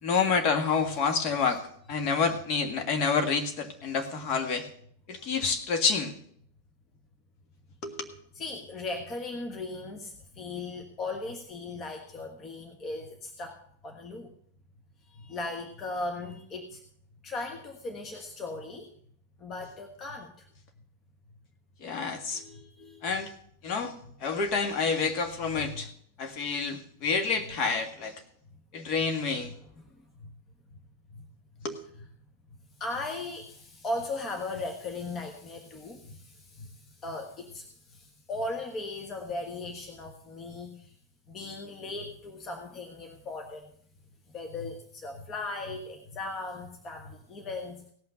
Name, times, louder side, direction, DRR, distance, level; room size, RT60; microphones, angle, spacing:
voice 1, 0.0-1.6 1.9-4.7 5.1-6.1 7.8-8.1 21.8-22.4 23.0-23.3 23.6-23.9 24.2-25.9 26.2-28.2 28.7-29.5 31.6-31.8, left 5 dB, 45° left, 6 dB, 1.8 m, -28 dB
voice 2, 8.3-14.3 15.1-16.8 17.2-18.9 19.4-20.5 22.3-23.0 25.6-25.8 29.4-29.6 29.8-29.9 30.2-30.3 31.1-31.2 32.8-40.9 41.3-43.7 44.3-47.9, left 2 dB, 30° left, 4 dB, 1.4 m, -38 dB
17.5 x 5.8 x 6.5 m, 0.65 s
hypercardioid pair, 100°, 0 cm